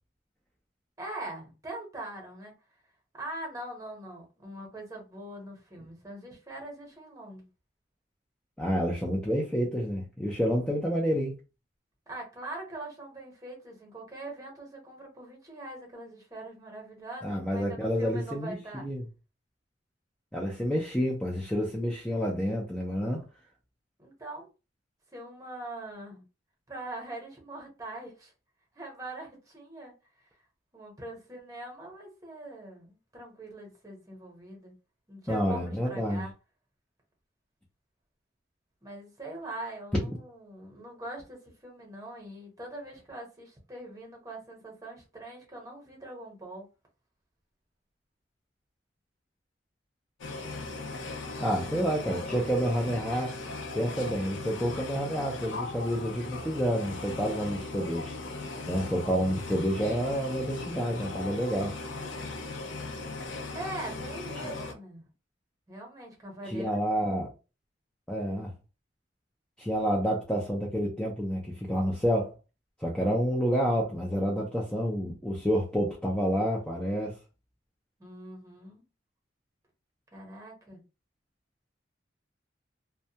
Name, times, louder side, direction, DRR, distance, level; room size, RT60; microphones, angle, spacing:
voice 1, 1.0-2.5 3.1-7.5 12.1-18.9 24.0-24.5 25.1-26.2 26.7-28.3 28.7-29.9 30.7-34.7 35.1-36.3 38.8-46.7 63.5-65.0 65.7-67.2 73.0-73.2 78.0-78.8 80.1-80.8, right 1 dB, 20° right, 0.9 m, -42 dB
voice 2, 8.6-11.4 17.2-18.5 18.8-19.0 20.3-23.2 35.3-36.3 51.4-53.4 53.7-58.1 58.7-61.8 66.5-67.3 68.1-68.5 69.6-72.3 72.8-77.2, equal, 5° left, 0.4 m, -29 dB
sound 1, 50.2-64.7, left 3 dB, 85° left, 0.5 m, -38 dB
2.3 x 2.1 x 2.7 m
head